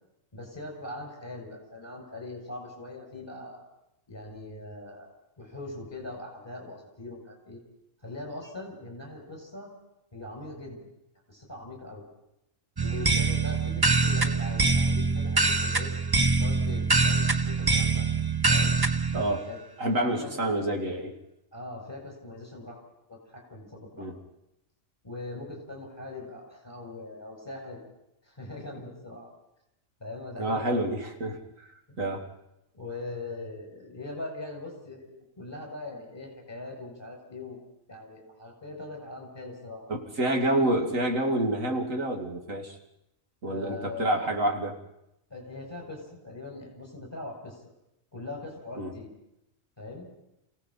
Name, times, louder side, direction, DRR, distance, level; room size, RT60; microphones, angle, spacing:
voice 1, 0.3-3.6 4.1-5.1 5.4-7.6 8.0-9.7 10.1-10.8 11.3-12.1 12.8-15.9 16.4-18.1 18.5-18.8 19.5-20.7 21.5-22.8 23.1-24.1 25.0-27.8 28.2-29.3 30.0-31.0 31.9-32.1 32.7-37.6 37.9-39.9 43.5-44.3 45.3-47.6 48.1-49.1 49.8-50.1, left 2 dB, 20° left, 1 dB, 6.9 m, -41 dB
sound 1, 12.8-19.2, right 4 dB, 20° right, 0.9 m, -24 dB
voice 2, 19.1-19.5 19.8-21.1 24.0-24.2 30.4-31.4 32.0-32.3 39.9-42.8 43.4-44.8 48.8-48.9, right 1 dB, 75° right, 3 dB, 2.9 m, -28 dB
28.0 x 17.0 x 5.8 m, 0.85 s
omnidirectional pair, 1.4 m